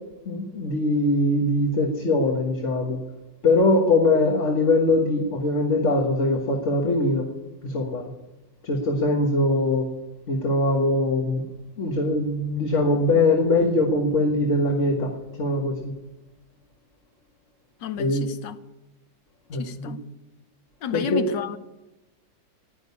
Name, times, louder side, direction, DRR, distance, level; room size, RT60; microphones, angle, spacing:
voice 1, 0.3-3.0 3.4-7.3 7.6-8.1 8.6-9.9 10.3-11.4 11.8-15.1 15.4-15.9 18.0-18.3 19.5-20.0 20.9-21.2, left 2 dB, 45° left, 1 dB, 1.7 m, -22 dB
voice 2, 17.8-18.6 19.6-20.0 20.8-21.6, left 8 dB, 90° left, 11 dB, 1.5 m, -31 dB
19.0 x 6.5 x 9.7 m, 1.0 s
omnidirectional pair, 1.9 m